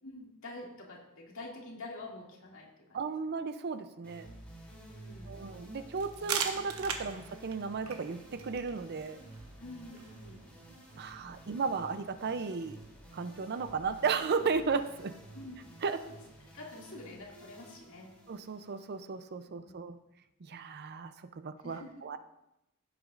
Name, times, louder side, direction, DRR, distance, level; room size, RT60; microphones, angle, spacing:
voice 1, 0.0-3.0 4.7-5.4 9.6-10.4 11.0-11.4 15.3-15.6 16.0-16.2 16.5-18.1 21.6-21.9, left 2 dB, 65° left, -2 dB, 2.3 m, -47 dB
voice 2, 2.9-4.4 5.3-9.2 11.0-12.8 13.1-15.2 15.8-16.0 18.3-20.0 20.4-22.2, right 5 dB, 45° right, 11 dB, 0.5 m, -35 dB
sound 1, 4.0-19.4, right 1 dB, 5° left, 2.9 m, -52 dB
sound 2, 6.0-11.5, right 6 dB, 70° right, 1.1 m, -41 dB
16.0 x 8.1 x 2.5 m, 0.86 s
head